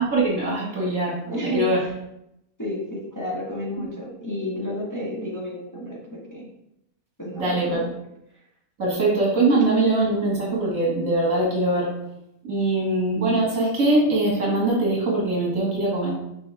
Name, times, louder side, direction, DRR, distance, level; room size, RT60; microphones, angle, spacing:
voice 1, 0.0-1.2 1.4-1.8 3.8-3.9 7.4-7.9 8.8-11.9 12.4-16.1, right 2 dB, 65° right, -4 dB, 2.5 m, -22 dB
voice 2, 1.3-1.9 2.6-6.5 7.2-7.9, equal, 15° left, -5 dB, 1.5 m, -31 dB
6.1 x 5.4 x 3.5 m, 0.81 s
omnidirectional pair, 1.6 m